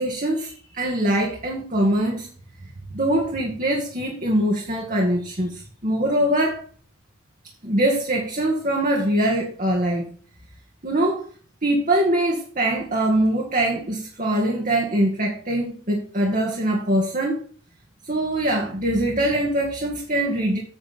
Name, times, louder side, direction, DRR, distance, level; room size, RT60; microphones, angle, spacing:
voice 1, 0.0-2.3 2.9-6.6 7.6-10.1 10.8-11.3 11.6-17.4 18.0-20.6, right 1 dB, 40° right, 1.9 m, -23 dB
9.0 x 7.6 x 4.3 m
head